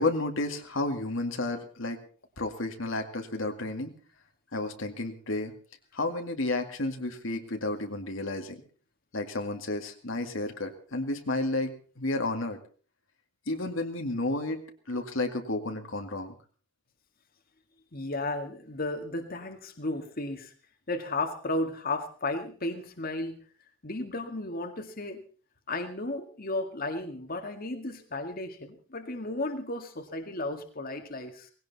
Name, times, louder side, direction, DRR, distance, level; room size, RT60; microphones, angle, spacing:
voice 1, 0.0-2.0 2.4-3.9 4.5-5.5 5.9-8.6 9.1-12.6 13.5-14.6 14.9-16.3, left 2 dB, 65° left, 4 dB, 2.1 m, -31 dB
voice 2, 17.9-20.5 20.9-23.4 23.8-25.2 25.7-31.5, left 2 dB, 45° left, 5 dB, 2.0 m, -34 dB
19.0 x 17.5 x 4.2 m, 0.41 s
head